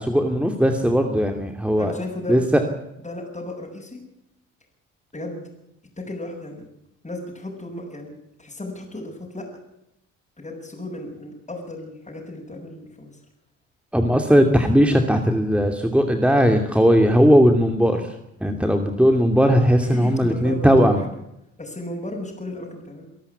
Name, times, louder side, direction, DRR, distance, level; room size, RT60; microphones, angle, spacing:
voice 1, 0.0-1.9 2.3-2.6 13.9-18.2 18.4-21.0, equal, 5° right, 5 dB, 2.6 m, -18 dB
voice 2, 1.8-2.4 3.0-4.0 5.1-5.4 6.0-6.7 7.0-9.5 10.4-13.1 19.8-21.1 21.6-23.0, left 1 dB, 20° left, -2 dB, 7.4 m, -34 dB
26.0 x 13.0 x 8.5 m, 0.84 s
hypercardioid pair, 50°, 37 cm